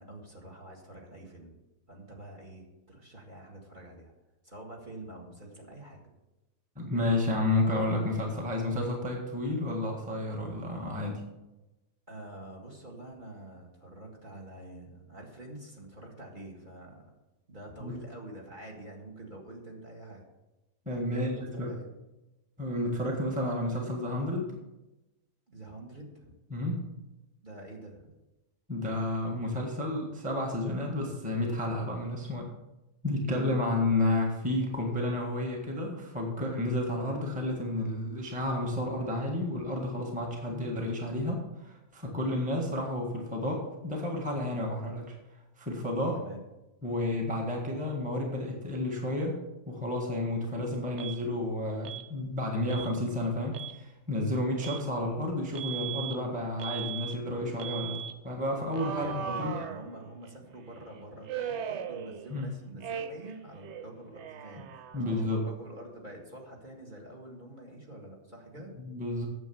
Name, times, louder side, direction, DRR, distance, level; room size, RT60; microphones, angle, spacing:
voice 1, 0.0-1.6 1.9-4.1 4.4-6.0 12.1-17.1 17.5-20.3 21.1-21.9 25.5-26.3 27.4-28.1 33.2-33.5 46.1-46.4 58.9-64.7 65.0-68.8, right 2 dB, 30° right, 0 dB, 1.9 m, -46 dB
voice 2, 6.7-11.2 17.8-17.9 20.8-21.7 22.6-24.5 26.5-26.8 28.7-32.5 33.0-45.1 45.6-46.2 46.8-49.4 49.7-58.0 58.2-59.5 62.3-62.5 64.9-65.5 68.8-69.3, left 1 dB, 5° right, 0 dB, 1.5 m, -31 dB
Alarm, 51.0-51.2 51.8-52.1 52.7-52.9 53.4-53.8 54.6-54.8 55.5-56.2 56.6-57.2 57.6-58.1 58.7-60.3 61.3-62.5 62.8-63.4 63.6-65.3, right 8 dB, 65° right, 0.7 m, -38 dB
9.3 x 7.2 x 7.0 m, 1.0 s
omnidirectional pair, 1.8 m